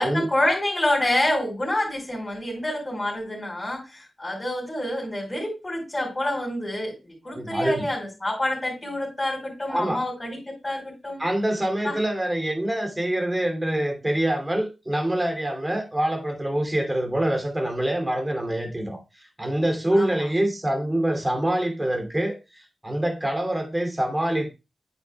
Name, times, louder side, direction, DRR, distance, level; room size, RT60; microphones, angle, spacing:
voice 1, 0.0-7.0 7.2-11.2 11.8-12.0 19.9-20.1, left 1 dB, 25° left, 4.6 m, -27 dB
voice 2, 7.3-7.9 9.7-10.0 11.2-19.0 19.4-24.6, right 1 dB, 15° right, 2.7 m, -25 dB
8.9 x 8.9 x 2.3 m
wide cardioid pair, 90°, 0 cm